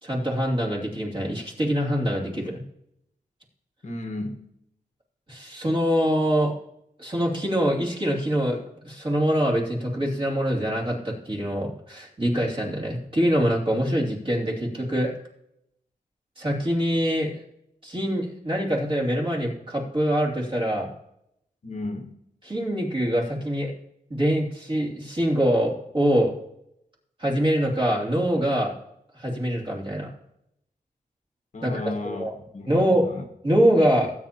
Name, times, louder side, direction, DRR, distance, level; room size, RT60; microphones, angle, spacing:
voice 1, 0.0-2.6 5.3-6.5 7.0-8.6 8.8-15.1 16.4-17.3 17.8-20.9 22.4-23.7 24.1-26.3 27.2-28.7 29.1-30.1 31.6-32.3 32.7-33.1 33.4-34.1, equal, 35° right, 2.8 m, -24 dB
voice 2, 3.8-4.4 21.6-22.1 31.5-32.3 32.5-33.2, left 2 dB, 50° left, 1.3 m, -33 dB
19.5 x 8.8 x 2.9 m
wide cardioid pair, 135°, 16 cm